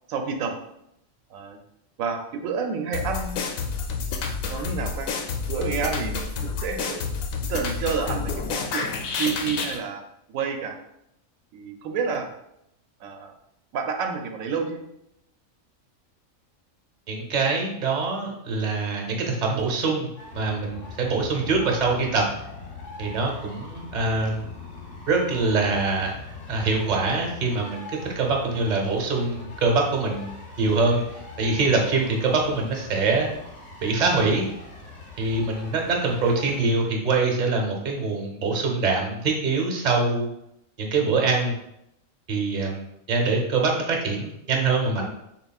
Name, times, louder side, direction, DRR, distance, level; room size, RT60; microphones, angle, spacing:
voice 1, 0.1-0.5 1.3-1.6 2.0-3.4 4.4-5.1 5.5-7.0 7.5-10.0 10.3-10.8 11.5-12.3 13.0-13.3 13.7-14.8, right 5 dB, 90° right, 4 dB, 1.0 m, -29 dB
sound 1, 2.9-9.8, left 5 dB, 85° left, 1.0 m, -29 dB
voice 2, 17.1-22.2 23.0-24.5 25.1-26.2 26.5-30.3 30.6-33.3 33.8-34.5 35.2-40.3 40.8-41.5 42.3-45.1, right 3 dB, 40° right, 0 dB, 0.8 m, -24 dB
sound 2, 20.2-36.6, left 3 dB, 45° left, 0.6 m, -42 dB
6.6 x 2.3 x 2.3 m, 0.80 s
omnidirectional pair, 1.4 m